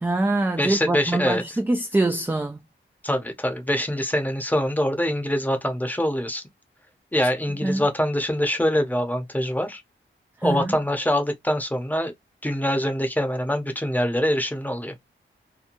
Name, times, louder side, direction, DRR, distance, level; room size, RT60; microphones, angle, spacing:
voice 1, 0.0-2.6 7.6-7.9 10.4-10.7, right 2 dB, 10° right, 0.3 m, -24 dB
voice 2, 0.6-1.4 3.0-6.4 7.1-9.8 10.4-12.1 12.4-14.9, equal, 10° left, 0.7 m, -24 dB
2.9 x 2.2 x 2.6 m
wide cardioid pair, 105°, 21 cm